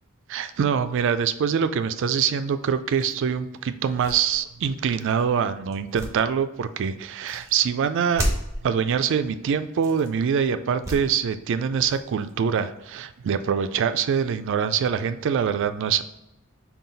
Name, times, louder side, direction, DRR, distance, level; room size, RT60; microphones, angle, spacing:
voice 1, 0.3-8.2 8.6-16.0, right 7 dB, 55° right, 11 dB, 0.3 m, -24 dB
sound 1, 3.0-3.1 3.8-5.2 5.7-6.8 7.3-7.5 8.1-8.7 9.7-10.2 10.8-11.3 11.7-12.9, equal, 15° right, 0.8 m, -32 dB
5.6 x 2.3 x 3.9 m, 0.91 s
head